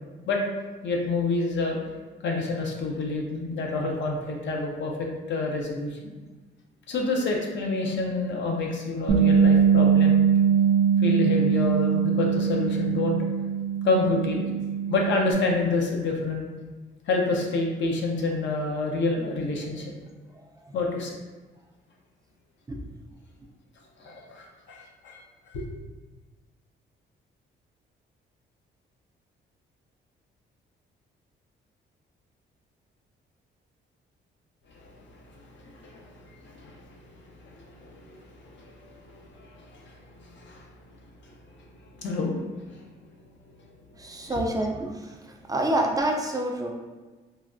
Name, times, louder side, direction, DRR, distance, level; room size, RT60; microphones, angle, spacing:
voice 1, 0.8-1.8 2.2-6.0 6.9-10.2 11.0-13.2 13.8-14.5 14.9-16.5 17.1-19.9 20.7-21.1 24.0-25.2 25.5-25.7 34.7-37.0 37.3-40.7 42.0-42.3 42.7-42.8, left 3 dB, 65° left, 0 dB, 0.6 m, -28 dB
Bass guitar, 9.1-15.3, right 7 dB, 85° right, 0.5 m, -22 dB
voice 2, 44.0-44.9 45.5-46.7, right 1 dB, 20° right, 1 dB, 0.4 m, -26 dB
3.2 x 2.2 x 2.5 m, 1.3 s
cardioid pair, 90°, 20 cm